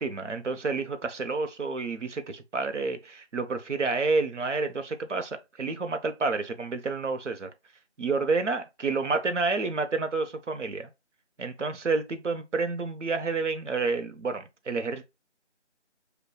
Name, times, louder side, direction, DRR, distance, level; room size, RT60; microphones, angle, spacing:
voice 1, 0.0-7.5 8.0-10.9 11.4-15.1, right 4 dB, 80° right, 0.8 m, -29 dB
6.7 x 2.2 x 2.3 m
figure-of-eight pair, 180°, 36 cm